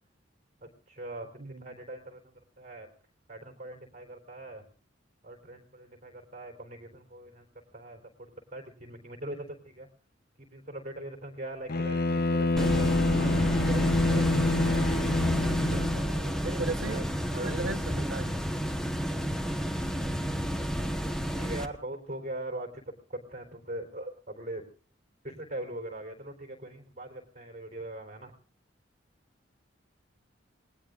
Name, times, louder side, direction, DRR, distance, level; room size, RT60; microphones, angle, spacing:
voice 1, 0.6-2.9 3.3-4.7 5.2-7.5 7.7-9.9 10.4-17.8 20.7-24.6 25.2-28.3, right 1 dB, 35° right, 3 dB, 3.8 m, -42 dB
Bowed string instrument, 11.7-16.1, left 2 dB, 50° left, 0.8 m, -27 dB
sound 1, 12.6-21.7, equal, 5° left, 1.1 m, -30 dB
voice 2, 16.6-17.0 17.4-18.3, right 3 dB, 65° right, 8 dB, 1.1 m, -35 dB
28.0 x 19.5 x 2.5 m, 0.39 s
head